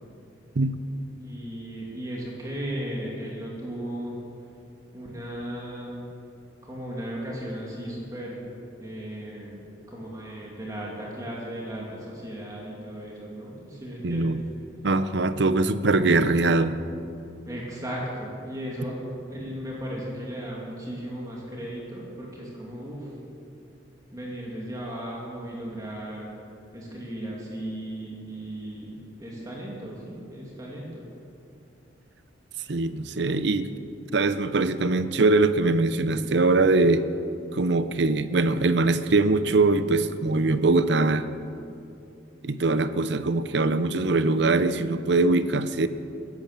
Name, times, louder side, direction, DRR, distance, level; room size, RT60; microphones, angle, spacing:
voice 1, 1.2-4.2 4.9-6.0 6.6-8.4 8.8-9.6 9.9-14.4 15.8-16.2 17.5-19.0 19.3-23.1 24.1-26.3 26.7-31.1, right 1 dB, 20° right, -4 dB, 2.4 m, -36 dB
voice 2, 14.0-14.4 14.8-16.8 32.7-33.7 34.1-37.1 37.5-41.3 42.4-45.9, right 3 dB, 65° right, 12 dB, 0.7 m, -22 dB
16.0 x 11.0 x 7.4 m, 2.6 s
head